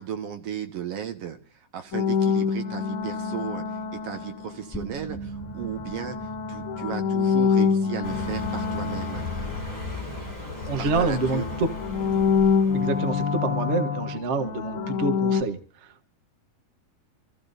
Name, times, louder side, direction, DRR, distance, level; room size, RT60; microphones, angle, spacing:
voice 1, 0.0-1.4 1.7-9.3 10.8-11.5, right 8 dB, 60° right, 6 dB, 2.3 m, -35 dB
sound 1, 1.9-4.8 5.5-10.3 10.6-15.4, left 6 dB, 60° left, 1.5 m, -26 dB
sound 2, 4.7-9.8, right 2 dB, 5° left, 0.7 m, -41 dB
Car passing by, 8.0-13.5, left 2 dB, 10° right, 4.5 m, -36 dB
voice 2, 10.7-11.7 12.7-15.6, right 3 dB, 75° right, 7 dB, 0.6 m, -27 dB
26.5 x 14.5 x 2.7 m, 0.41 s
omnidirectional pair, 3.4 m